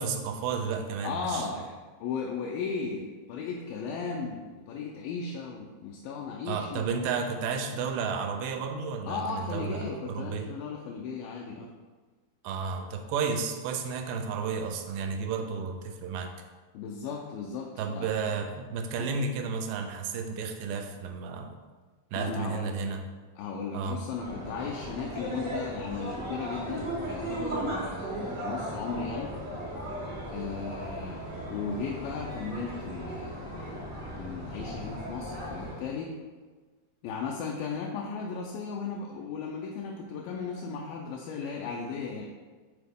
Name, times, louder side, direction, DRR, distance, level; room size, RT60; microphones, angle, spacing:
voice 1, 0.0-1.5 6.5-10.5 12.4-16.3 17.8-21.5 22.1-23.0 23.7-24.0, right 5 dB, 80° right, 5 dB, 2.1 m, -32 dB
voice 2, 1.0-6.9 9.1-11.7 16.7-18.2 19.0-19.1 22.2-22.7 23.4-29.3 30.3-31.2 31.5-33.5 34.2-36.1 37.0-42.3, left 5 dB, 85° left, -1 dB, 2.3 m, -36 dB
sound 1, 24.1-35.9, right 1 dB, 65° right, 0.7 m, -36 dB
6.7 x 4.1 x 3.5 m, 1.4 s
omnidirectional pair, 4.0 m